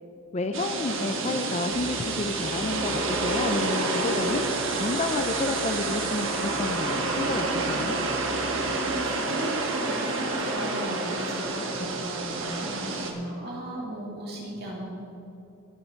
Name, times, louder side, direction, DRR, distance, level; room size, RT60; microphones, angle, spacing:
voice 1, 0.3-8.0, left 2 dB, 30° left, 8 dB, 0.4 m, -30 dB
sound 1, 0.5-13.1, right 2 dB, 65° right, 1.4 m, -29 dB
sound 2, 1.7-8.9, left 1 dB, 65° left, 2.2 m, -44 dB
voice 2, 8.6-14.9, right 1 dB, 45° right, -4 dB, 2.8 m, -36 dB
19.0 x 7.0 x 4.5 m, 2.8 s
head